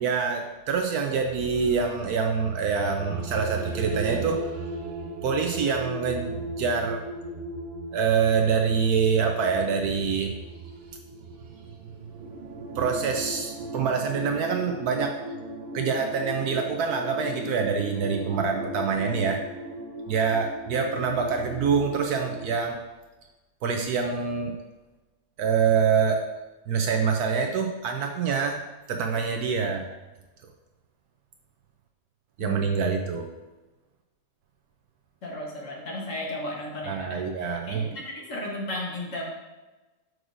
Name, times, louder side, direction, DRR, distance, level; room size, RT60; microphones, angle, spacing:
voice 1, 0.0-4.7 5.2-7.0 7.9-10.3 12.8-15.2 15.7-19.4 20.1-22.8 23.6-24.6 25.4-26.2 26.7-28.6 28.9-29.9 32.4-33.3 36.9-37.9, right 6 dB, 70° right, 3 dB, 1.0 m, -25 dB
sound 1, 3.0-22.7, right 2 dB, 85° right, 0.5 m, -37 dB
voice 2, 35.2-39.2, left 1 dB, 50° left, -1 dB, 1.2 m, -35 dB
6.2 x 6.2 x 2.5 m, 1.1 s
omnidirectional pair, 1.9 m